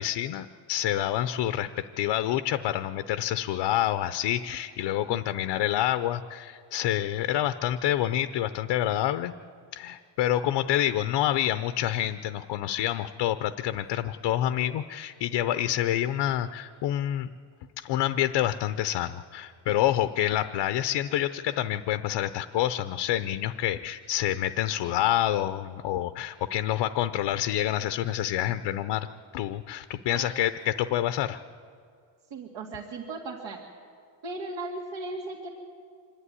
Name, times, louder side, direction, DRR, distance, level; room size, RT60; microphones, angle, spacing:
voice 1, 0.0-9.3 9.7-17.3 17.8-29.1 29.3-31.4, left 12 dB, 65° left, 11 dB, 0.7 m, -27 dB
voice 2, 32.3-33.6 34.2-35.5, right 3 dB, 70° right, -2 dB, 2.2 m, -36 dB
25.5 x 11.0 x 9.7 m, 2.2 s
cardioid pair, 180°, 47 cm